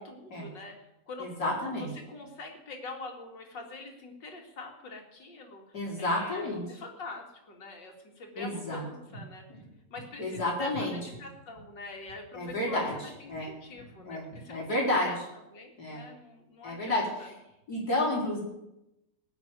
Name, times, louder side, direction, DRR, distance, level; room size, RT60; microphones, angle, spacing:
voice 1, 0.1-1.7 2.1-5.6 6.0-9.4 9.9-12.8 13.2-15.2 15.5-17.3, left 3 dB, 85° left, 2 dB, 3.1 m, -44 dB
voice 2, 1.2-1.9 5.7-6.8 8.4-8.8 9.1-9.2 9.5-9.6 10.2-11.0 12.3-12.9 13.3-13.5 14.0-15.1 15.8-16.0 16.6-17.3 17.7-18.4, left 1 dB, 60° left, -3 dB, 5.0 m, -31 dB
19.0 x 6.3 x 9.0 m, 0.90 s
omnidirectional pair, 1.9 m